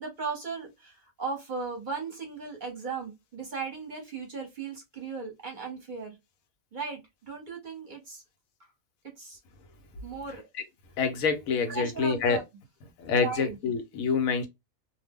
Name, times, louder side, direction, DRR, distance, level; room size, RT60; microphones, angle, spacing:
voice 1, 0.0-6.2 6.7-8.2 9.2-9.4 10.0-10.4 11.7-12.4 13.2-13.6, right 5 dB, 40° right, 0.9 m, -37 dB
voice 2, 11.0-12.4 13.0-14.5, left 5 dB, 85° left, 1.1 m, -26 dB
2.6 x 2.0 x 3.5 m
omnidirectional pair, 1.4 m